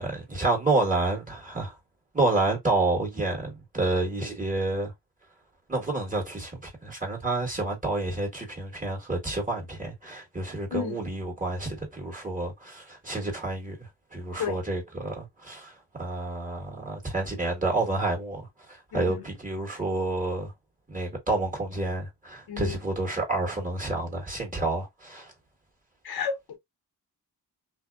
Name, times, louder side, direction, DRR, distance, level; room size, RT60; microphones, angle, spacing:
voice 1, 0.0-1.7 2.1-4.9 5.7-20.5 20.9-25.3, right 2 dB, 20° right, 1.4 m, -29 dB
voice 2, 18.9-19.2 22.5-22.8 26.0-26.6, left 6 dB, 70° left, 0.9 m, -32 dB
2.7 x 2.1 x 2.3 m
cardioid pair, 75°, 38 cm